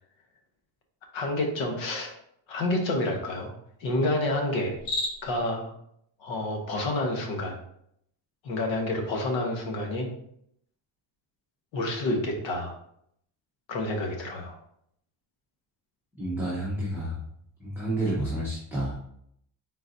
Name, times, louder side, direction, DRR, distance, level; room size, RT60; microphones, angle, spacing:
voice 1, 1.1-2.1 2.5-3.5 3.8-4.8 5.2-5.7 6.2-7.6 8.4-10.1 11.7-12.8 13.7-14.6, left 1 dB, 70° left, 2 dB, 1.1 m, -29 dB
Cricket, 4.7-5.5, left 2 dB, 90° left, 1.2 m, -32 dB
voice 2, 16.2-17.2 17.6-18.9, right 1 dB, 5° right, -7 dB, 0.7 m, -30 dB
4.1 x 3.9 x 2.6 m, 0.71 s
cardioid pair, 165°, 47 cm